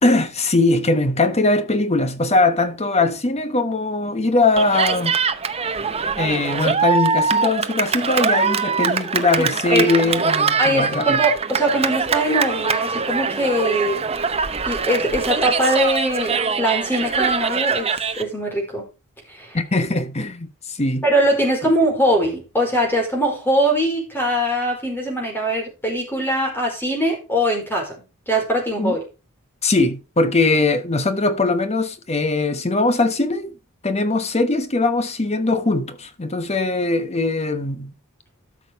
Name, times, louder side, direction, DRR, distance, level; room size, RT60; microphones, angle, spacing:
voice 1, 0.0-5.2 6.2-11.2 19.5-21.0 28.8-28.9 29.6-33.5 33.8-37.9, left 2 dB, 30° left, 1.0 m, -20 dB
Cheering, 4.6-18.2, right 5 dB, 25° right, 0.8 m, -22 dB
voice 2, 9.4-9.9 10.6-14.0 14.7-18.9 19.3-19.6 21.0-29.0, equal, 10° left, 4.7 m, -22 dB
13.0 x 6.1 x 4.6 m
head